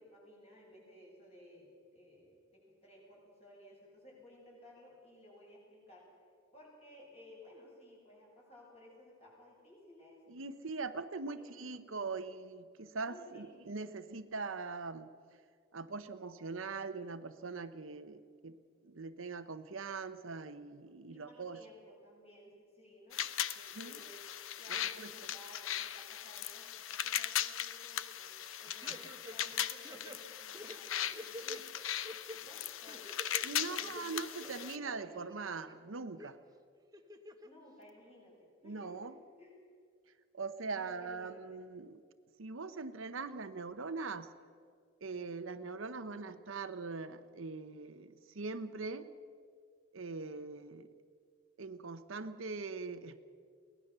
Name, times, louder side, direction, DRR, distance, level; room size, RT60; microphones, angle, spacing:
voice 1, 0.0-6.1 6.5-10.3 11.4-11.7 13.0-13.4 13.8-13.9 21.1-23.2 23.7-24.3 24.5-31.9 32.4-33.2 33.5-35.0 37.4-39.1 39.4-39.5 40.7-41.6, left 1 dB, 30° left, -3 dB, 7.6 m, -57 dB
voice 2, 10.3-15.1 15.7-18.6 18.8-21.6 23.6-24.0 25.0-25.1 28.9-29.0 33.4-36.4 38.6-39.1 40.3-42.0 42.4-44.3 45.0-49.1 49.9-50.9 51.6-53.2, right 4 dB, 75° right, 10 dB, 0.9 m, -42 dB
sound 1, 23.1-34.8, left 10 dB, 75° left, 0.8 m, -39 dB
sound 2, 28.8-29.6 29.8-31.6 32.0-32.4 32.9-33.5 33.8-34.7 35.1-35.8 36.2-36.3 36.9-37.5 37.9-38.0, equal, 20° right, 1.1 m, -49 dB
23.5 x 18.5 x 6.8 m, 2.1 s
head